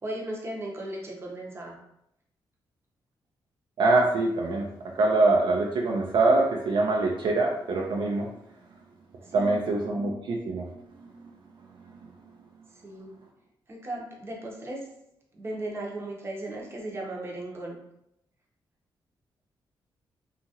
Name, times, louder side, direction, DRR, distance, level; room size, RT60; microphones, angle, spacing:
voice 1, 0.0-1.8 9.2-9.6 12.8-13.1 13.7-14.9 15.3-17.8, right 1 dB, 30° right, -1 dB, 0.7 m, -36 dB
voice 2, 3.8-4.6 4.9-8.3 9.3-10.7, right 2 dB, 65° right, -1 dB, 0.4 m, -24 dB
2.8 x 2.4 x 2.7 m, 0.78 s
cardioid pair, 95°, 9 cm